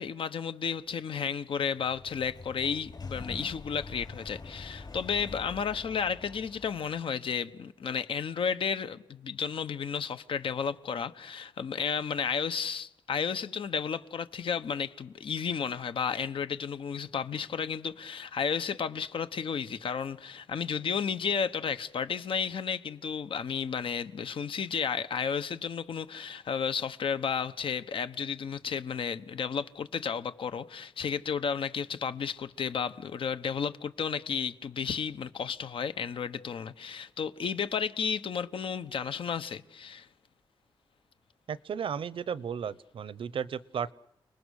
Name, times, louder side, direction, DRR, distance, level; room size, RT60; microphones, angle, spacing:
voice 1, 0.0-40.1, left 6 dB, 90° left, 1.2 m, -32 dB
Sliding door, 1.8-7.0, left 3 dB, 50° left, 5.4 m, -45 dB
voice 2, 41.5-43.9, right 7 dB, 90° right, 0.8 m, -34 dB
29.5 x 20.5 x 6.6 m
wide cardioid pair, 85°, 9 cm